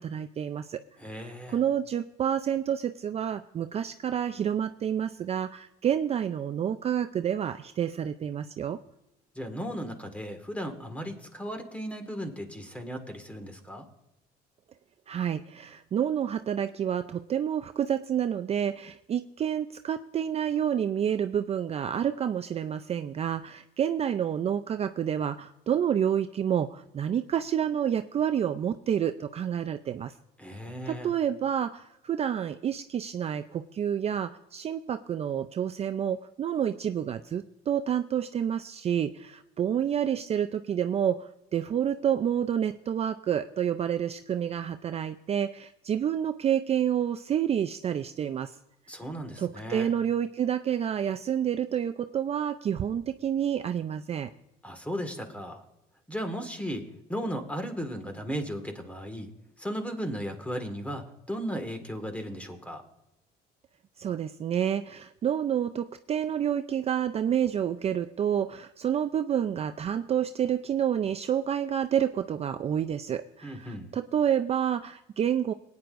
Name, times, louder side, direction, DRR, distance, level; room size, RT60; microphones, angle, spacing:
voice 1, 0.0-0.8 1.1-8.8 15.1-30.1 30.9-48.5 49.4-54.3 64.0-75.5, right 9 dB, 40° right, 9 dB, 0.4 m, -29 dB
voice 2, 1.0-1.6 9.4-13.9 30.4-31.1 48.9-49.9 54.6-55.6 56.1-59.3 59.6-62.8 73.4-73.9, equal, 10° left, 6 dB, 1.7 m, -36 dB
20.0 x 9.5 x 2.5 m, 0.88 s
cardioid pair, 110°, 17 cm